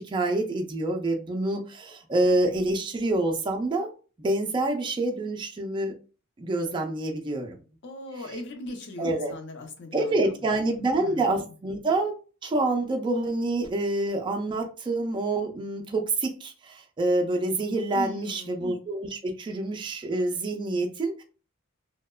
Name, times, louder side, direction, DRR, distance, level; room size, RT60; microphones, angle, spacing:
voice 1, 0.0-3.9 4.2-5.9 6.4-7.6 8.3-8.4 9.0-9.3 9.9-12.2 12.4-21.2, right 2 dB, 20° right, 0.3 m, -27 dB
voice 2, 7.8-11.5 17.9-18.6, left 2 dB, 55° left, 0.6 m, -39 dB
2.7 x 2.0 x 2.3 m
head